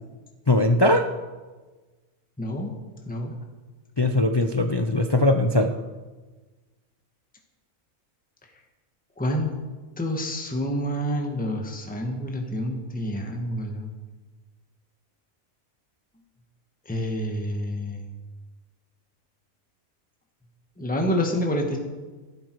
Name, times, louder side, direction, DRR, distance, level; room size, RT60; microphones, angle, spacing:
voice 1, 0.5-1.1 4.0-5.7, left 1 dB, 40° left, 7 dB, 0.3 m, -20 dB
voice 2, 2.4-2.7 3.0-3.3 9.2-9.5 10.0-13.9 16.9-18.0 20.8-21.8, equal, 5° left, 2 dB, 1.5 m, -28 dB
14.0 x 12.0 x 4.7 m, 1.3 s
omnidirectional pair, 1.4 m